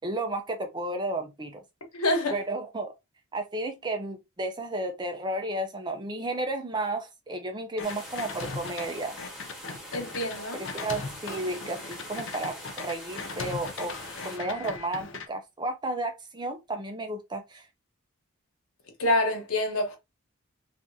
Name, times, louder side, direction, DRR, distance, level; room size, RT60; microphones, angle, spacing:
voice 1, 0.0-1.6 2.3-2.9 3.3-9.2 10.6-13.9 14.2-17.7, right 2 dB, 20° right, 0.5 m, -33 dB
voice 2, 1.9-2.4 9.9-10.6 19.0-20.0, left 1 dB, 85° left, 1.2 m, -26 dB
sound 1, 7.8-8.9 9.2-15.3, left 4 dB, 60° left, 0.5 m, -38 dB
sound 2, 7.8-14.4, equal, ahead, 1.2 m, -43 dB
3.5 x 2.5 x 2.7 m
head